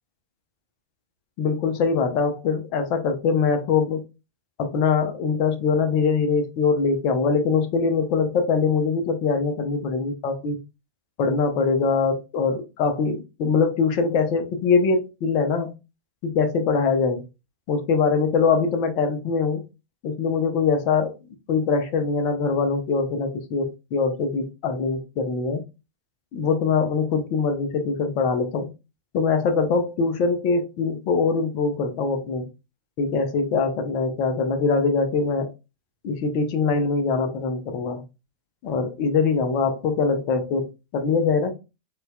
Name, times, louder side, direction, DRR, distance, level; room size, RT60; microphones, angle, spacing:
voice 1, 1.4-4.0 4.6-10.6 11.2-15.7 16.2-17.2 17.7-19.6 20.0-21.1 21.5-25.6 26.3-28.7 29.1-32.5 33.0-35.5 36.0-38.0 38.6-41.5, left 5 dB, 40° left, 0.7 m, -23 dB
4.1 x 2.5 x 2.2 m
figure-of-eight pair, 90°, 0 cm